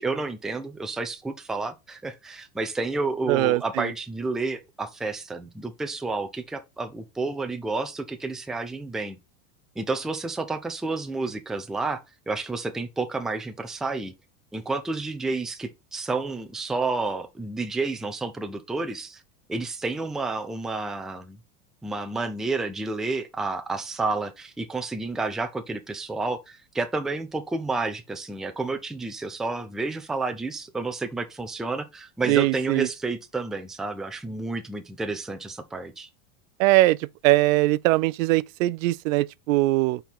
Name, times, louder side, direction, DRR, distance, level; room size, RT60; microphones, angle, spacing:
voice 1, 0.0-9.2 9.8-12.0 12.3-14.1 14.5-19.2 19.5-21.4 21.8-36.1, right 3 dB, ahead, 0.4 m, -30 dB
voice 2, 3.3-3.9 32.3-32.9 36.6-37.0 37.2-40.0, right 19 dB, 70° right, 0.5 m, -21 dB
4.5 x 4.5 x 5.3 m
supercardioid pair, 140°, 41 cm